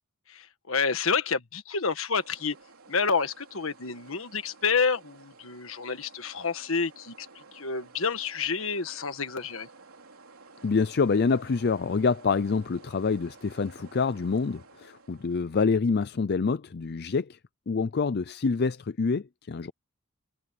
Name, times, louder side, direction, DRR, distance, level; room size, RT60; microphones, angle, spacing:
voice 1, 0.3-2.5 2.9-9.7, left 5 dB, 65° left, 1.6 m, -29 dB
sound 1, 2.2-15.6, right 4 dB, 80° right, 3.5 m, -53 dB
voice 2, 10.6-17.3 17.7-19.7, left 4 dB, 50° left, 0.5 m, -26 dB
head